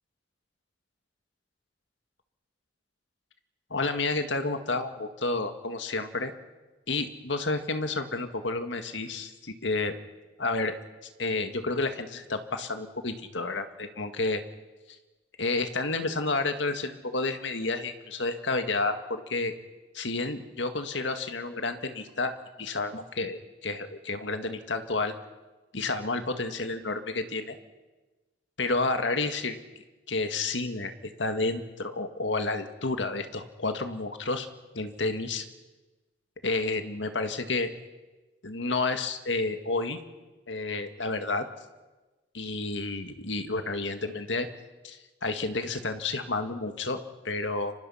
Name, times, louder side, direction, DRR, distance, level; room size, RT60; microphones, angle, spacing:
voice 1, 3.7-6.3 6.9-9.9 10.4-10.8 11.2-14.4 15.4-19.5 19.9-22.3 22.6-25.1 25.7-27.6 28.6-29.6 30.1-34.5 34.7-35.4 36.4-37.7 38.4-40.0 40.5-41.5 42.3-44.5 44.8-47.7, left 3 dB, 85° left, 7 dB, 1.9 m, -30 dB
30.0 x 25.0 x 5.8 m, 1.2 s
head